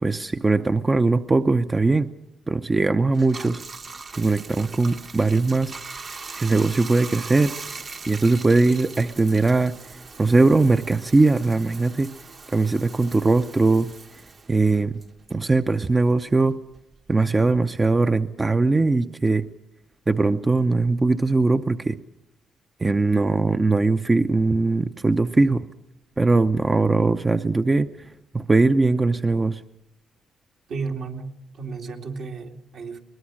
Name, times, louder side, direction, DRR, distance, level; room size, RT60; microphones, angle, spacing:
voice 1, 0.0-2.1 2.5-3.6 4.2-5.7 6.4-9.8 10.2-12.1 12.5-13.9 14.5-15.0 15.3-16.6 17.1-19.5 20.1-22.0 22.8-25.6 26.2-28.1 28.3-29.6, right 3 dB, 20° right, 9 dB, 0.7 m, -20 dB
Bathtub (filling or washing), 3.1-16.0 16.3-18.1, right 4 dB, 45° right, 1.2 m, -40 dB
voice 2, 30.7-33.0, right 4 dB, 65° right, 1 dB, 2.5 m, -33 dB
22.0 x 20.5 x 6.3 m, 0.92 s
cardioid pair, 90°, 0 cm